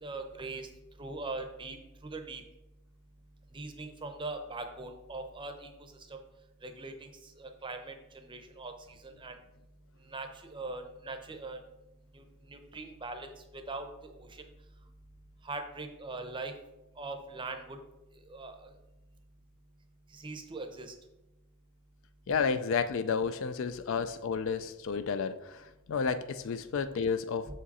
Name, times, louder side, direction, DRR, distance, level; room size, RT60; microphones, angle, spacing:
voice 1, 0.0-0.7 1.0-2.4 3.5-5.7 6.1-6.2 6.6-9.4 10.1-11.6 12.1-14.4 15.4-16.5 17.0-17.8 18.3-18.7 20.1-20.9 27.5-27.6, right 3 dB, 20° right, 6 dB, 0.6 m, -41 dB
voice 2, 22.3-27.5, left 5 dB, 60° left, 12 dB, 0.4 m, -31 dB
6.5 x 5.0 x 4.1 m, 0.98 s
head